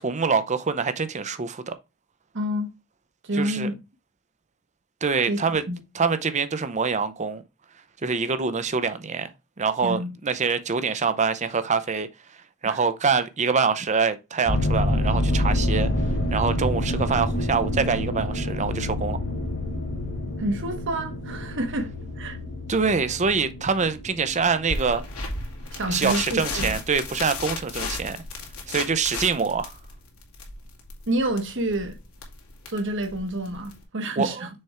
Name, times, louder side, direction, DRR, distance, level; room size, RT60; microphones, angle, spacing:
voice 1, 0.0-1.7 3.3-3.7 5.0-5.6 5.9-7.4 8.0-9.3 9.6-12.1 12.6-15.9 16.3-19.2 22.7-25.0 25.9-28.2 28.7-29.8 34.2-34.5, right 5 dB, 35° right, 0.7 m, -25 dB
voice 2, 2.3-2.7 3.2-3.8 5.3-5.4 5.7-5.8 9.8-10.1 12.6-12.8 20.4-21.9 22.2-22.4 25.7-26.8 31.1-32.0 32.7-34.5, right 1 dB, 60° right, 1.4 m, -28 dB
sound 1, 14.5-26.7 27.3-27.7 28.3-28.4 28.7-28.8, left 1 dB, 60° left, 2.1 m, -28 dB
sound 2, 24.7-33.8, left 3 dB, 80° left, 2.2 m, -34 dB
6.4 x 3.4 x 4.4 m
head